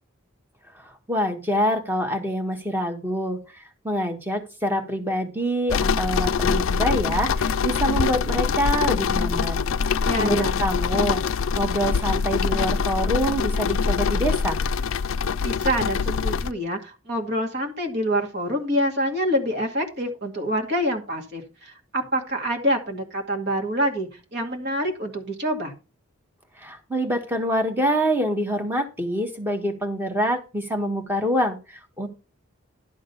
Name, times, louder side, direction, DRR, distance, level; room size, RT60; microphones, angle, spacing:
voice 1, 0.7-9.6 10.2-11.2 11.6-14.6 26.6-32.1, equal, 10° right, 4 dB, 1.4 m, -26 dB
sound 1, 5.7-16.5, left 5 dB, 65° left, 0.4 m, -24 dB
voice 2, 10.0-10.6 15.4-25.7, equal, 50° right, 2 dB, 2.3 m, -26 dB
11.5 x 3.9 x 6.9 m, 0.31 s
head